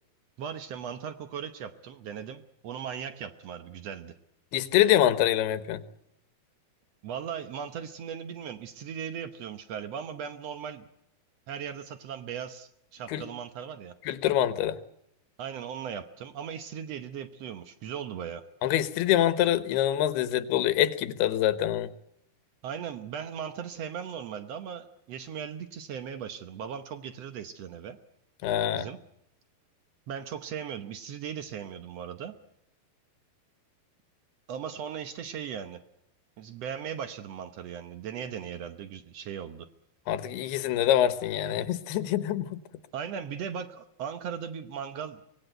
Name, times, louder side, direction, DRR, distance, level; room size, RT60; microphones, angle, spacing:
voice 1, 0.4-4.1 7.0-10.9 11.5-13.9 15.4-18.4 22.6-28.0 28.7-29.0 30.1-32.3 34.5-35.8 36.4-39.7 42.9-45.2, right 8 dB, 85° right, 10 dB, 1.4 m, -38 dB
voice 2, 4.5-5.8 13.1-13.2 14.1-14.8 18.6-21.9 28.4-28.9 40.1-42.6, left 12 dB, 90° left, 13 dB, 3.1 m, -25 dB
24.5 x 20.5 x 8.0 m, 0.78 s
omnidirectional pair, 4.5 m